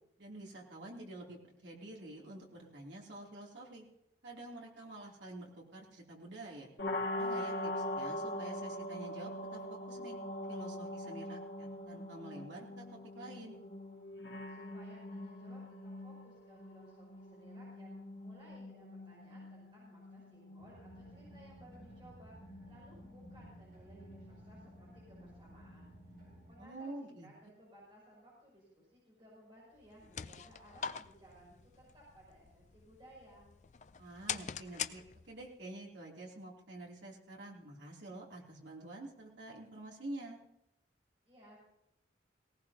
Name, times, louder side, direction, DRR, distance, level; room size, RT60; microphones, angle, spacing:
voice 1, 0.2-3.8 4.2-6.7 7.1-10.2 10.5-13.6 26.6-27.3 34.0-40.4, right 1 dB, 75° right, -2 dB, 2.9 m, -48 dB
sound 1, 6.8-26.6, left 1 dB, 65° left, 2.3 m, -44 dB
voice 2, 14.5-17.9 18.2-22.3 22.7-25.9 26.5-33.5 41.3-41.6, right 1 dB, 25° right, -6 dB, 6.4 m, -59 dB
sound 2, 20.6-26.5, right 1 dB, 45° right, 6.2 m, -56 dB
sound 3, 29.8-35.5, left 8 dB, 40° left, 0.4 m, -44 dB
18.5 x 18.0 x 2.8 m, 0.82 s
head